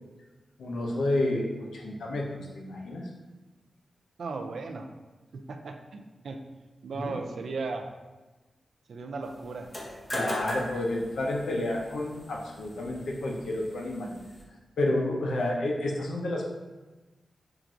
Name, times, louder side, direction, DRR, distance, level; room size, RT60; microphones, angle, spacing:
voice 1, 0.6-3.0 7.0-7.2 10.1-14.1 14.8-16.5, left 1 dB, 90° left, -1 dB, 0.6 m, -30 dB
voice 2, 4.2-4.9 5.3-6.4 6.8-7.9 8.9-9.7, right 3 dB, 80° right, 5 dB, 0.3 m, -36 dB
sound 1, 9.6-14.4, equal, 20° left, 0.7 m, -39 dB
5.7 x 2.5 x 2.4 m, 1.2 s
cardioid pair, 65°, 0 cm